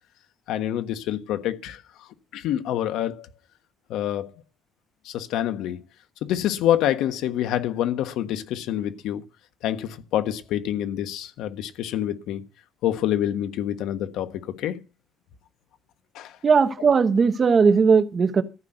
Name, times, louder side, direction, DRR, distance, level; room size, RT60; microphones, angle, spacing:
voice 1, 0.5-1.8 2.3-3.3 3.9-4.3 5.0-5.8 6.2-9.2 9.6-12.4 12.8-14.8 16.1-16.4, left 11 dB, 75° left, 1.3 m, -26 dB
voice 2, 16.4-18.4, right 5 dB, 30° right, 1.1 m, -18 dB
14.0 x 5.9 x 7.9 m
cardioid pair, 135°, 0 cm